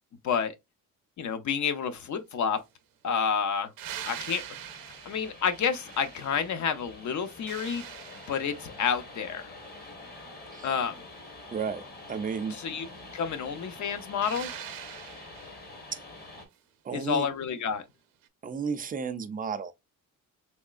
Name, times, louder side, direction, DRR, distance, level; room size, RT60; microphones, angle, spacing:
voice 1, 0.2-0.5 1.2-2.6 3.0-3.7 4.1-4.4 5.1-7.9 8.3-9.4 10.6-11.0 12.5-12.9 13.1-14.5 16.9-17.8, left 7 dB, 60° left, 0.7 m, -29 dB
sound 1, 3.8-16.5, left 2 dB, 30° left, 1.0 m, -47 dB
sound 2, 3.8-6.7 7.1-8.8 14.2-15.7 18.2-18.3, right 11 dB, 75° right, 0.6 m, -43 dB
voice 2, 11.5-11.8 12.1-12.6 15.9-16.0 16.8-17.3 18.4-19.7, right 6 dB, 25° right, 0.3 m, -32 dB
3.5 x 3.1 x 2.4 m
wide cardioid pair, 165°, 34 cm